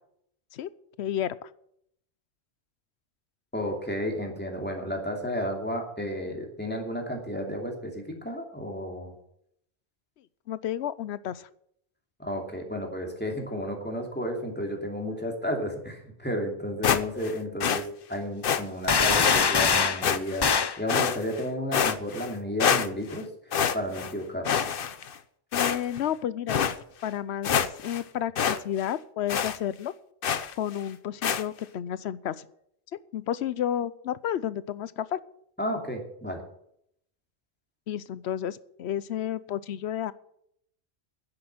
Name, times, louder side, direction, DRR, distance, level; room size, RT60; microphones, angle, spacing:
voice 1, 1.0-1.5 10.5-11.5 25.5-26.6 27.0-29.9 30.6-32.5 32.9-35.2 37.9-40.1, left 10 dB, 85° left, 17 dB, 0.9 m, -31 dB
voice 2, 3.5-9.1 12.2-20.5 20.8-24.6 35.6-36.4, equal, 10° left, 1 dB, 2.7 m, -32 dB
sound 1, 16.8-17.3 17.6-17.8 18.4-18.6 19.2-19.4 20.0-20.5 20.9-21.4 21.7-22.3 22.6-23.2 23.5-24.1 24.4-25.1 25.5-26.0 26.5-26.7 27.1-27.2 27.4-28.0 28.4-28.6 28.8-28.9 29.3-29.6 30.2-30.5 31.2-31.4, left 7 dB, 60° left, 0.9 m, -26 dB
sound 2, 18.9-20.0 20.4-20.8, left 6 dB, 45° left, 0.3 m, -22 dB
10.0 x 8.0 x 8.9 m, 0.72 s
omnidirectional pair, 1.1 m